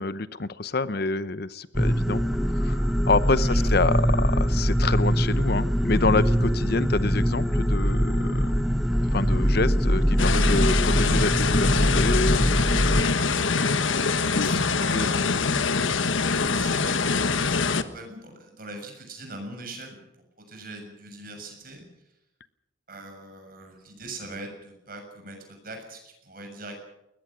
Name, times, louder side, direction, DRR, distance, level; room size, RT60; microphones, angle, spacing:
voice 1, 0.0-8.8 9.1-13.4 14.2-14.6 14.9-15.1, left 3 dB, 50° left, 15 dB, 0.8 m, -28 dB
sound 1, 1.7-13.0, equal, ahead, 0.9 m, -23 dB
voice 2, 3.4-3.7 4.0-4.2 14.4-15.7 16.5-20.0 20.4-21.9 22.9-26.8, right 2 dB, 45° right, 4 dB, 7.0 m, -41 dB
sound 2, 10.2-17.8, left 4 dB, 80° left, 1.3 m, -24 dB
21.5 x 20.5 x 6.3 m, 0.89 s
head